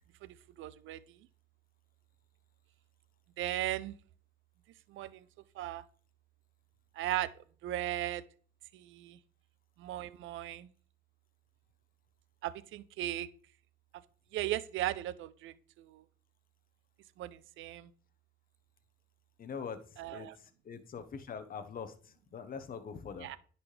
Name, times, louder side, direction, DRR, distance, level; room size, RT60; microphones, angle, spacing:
voice 1, 0.2-1.0 3.4-3.9 4.9-5.2 5.6-5.8 7.0-7.3 7.6-8.2 8.7-9.2 9.8-10.7 12.4-13.3 14.3-16.0 17.2-17.9 20.0-20.4 23.2-23.4, right 14 dB, 80° right, 16 dB, 0.5 m, -37 dB
voice 2, 19.4-19.8 20.1-20.3 20.6-21.9 22.3-23.3, left 6 dB, 45° left, 9 dB, 0.9 m, -42 dB
10.5 x 4.1 x 3.3 m, 0.43 s
cardioid pair, 90°, 20 cm